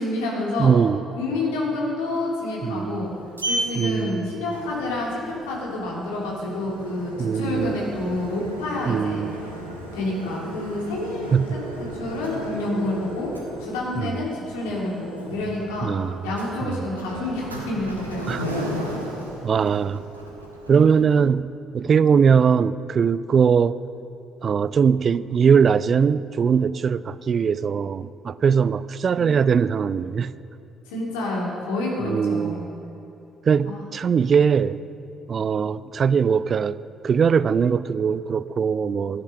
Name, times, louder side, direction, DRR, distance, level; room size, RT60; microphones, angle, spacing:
voice 1, 0.0-0.7 1.2-3.1 3.5-9.2 9.9-11.3 11.9-13.3 13.6-15.9 16.2-18.7 30.9-32.6 33.6-33.8, left 2 dB, 70° left, 2.9 m, -28 dB
voice 2, 0.6-1.0 2.6-3.1 3.8-4.3 7.2-7.8 8.9-9.4 11.3-11.5 14.0-14.1 15.8-16.2 16.6-16.8 18.3-18.5 19.4-20.0 20.7-21.5 21.7-23.7 24.4-30.3 32.0-32.6 33.5-34.8 35.3-36.8 37.0-39.2, right 6 dB, 45° right, 0.4 m, -21 dB
Sliding door, 2.8-21.1, right 1 dB, 85° right, 1.3 m, -35 dB
15.5 x 10.5 x 5.4 m
figure-of-eight pair, 45°, 0 cm